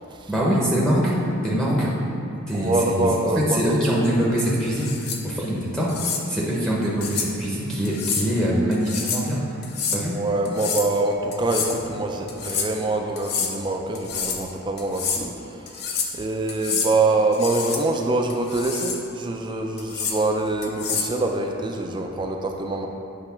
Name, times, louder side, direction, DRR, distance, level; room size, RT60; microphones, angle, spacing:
voice 1, 0.3-2.0 2.5-3.1 3.5-5.9 6.3-9.4 9.9-10.1, equal, 5° left, -6 dB, 0.7 m, -23 dB
voice 2, 2.5-3.8 9.9-22.9, right 2 dB, 20° right, 2 dB, 0.3 m, -25 dB
sound 1, 4.7-5.2 5.9-6.2 7.0-7.3 7.8-8.3 8.7-9.3 9.6-10.0 10.4-10.9 11.3-11.8 12.3-12.7 13.2-13.5 13.9-14.4 14.8-15.2 15.7-16.2 16.5-16.9 17.3-17.8 18.3-19.0 19.8-20.2 20.6-21.1, left 6 dB, 45° left, 0.6 m, -28 dB
8.0 x 3.3 x 5.6 m, 2.8 s
head